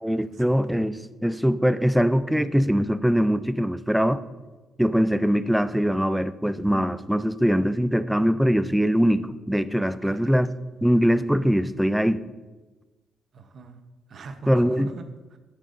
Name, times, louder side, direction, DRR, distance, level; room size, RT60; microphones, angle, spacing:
voice 1, 0.0-4.2 4.8-10.5 10.8-12.2 14.5-14.9, equal, ahead, 14 dB, 0.4 m, -22 dB
voice 2, 10.0-10.5 10.7-10.9 13.3-13.8 14.1-15.4, right 4 dB, 55° right, 8 dB, 0.8 m, -42 dB
10.5 x 7.5 x 2.6 m, 1.2 s
cardioid pair, 90°, 0 cm